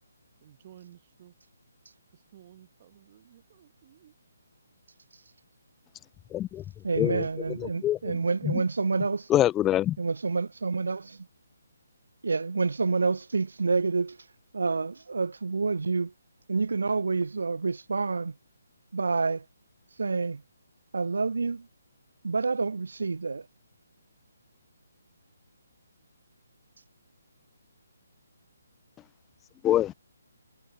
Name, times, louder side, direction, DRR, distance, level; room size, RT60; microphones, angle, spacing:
voice 1, 0.4-1.3 2.1-4.1, right 11 dB, 40° right, 7.3 m, -54 dB
voice 2, 6.3-6.6 7.0-7.2 7.8-8.0 9.3-10.0 29.6-29.9, left 12 dB, 15° left, 0.4 m, -24 dB
voice 3, 6.8-9.3 10.0-11.3 12.2-14.2 14.5-16.1 16.5-18.3 18.9-19.4 20.0-20.4 20.9-21.7 22.2-23.5, right 4 dB, 75° right, 0.8 m, -28 dB
figure-of-eight pair, 145°, 0 cm